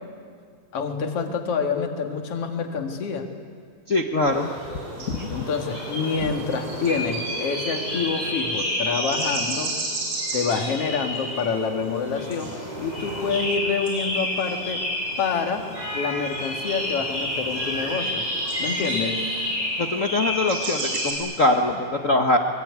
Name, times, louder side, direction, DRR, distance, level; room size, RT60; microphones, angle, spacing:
voice 1, 0.7-3.3 5.3-9.7 10.3-12.5 12.8-14.8 15.2-18.3 18.6-19.2, left 5 dB, 55° left, 4 dB, 2.8 m, -27 dB
voice 2, 3.9-4.5 5.0-5.4 19.8-22.4, left 2 dB, 80° left, 3 dB, 0.7 m, -23 dB
sound 1, 4.3-21.1, equal, 85° right, 7.9 m, -29 dB
24.5 x 23.5 x 9.5 m, 2.1 s
omnidirectional pair, 3.4 m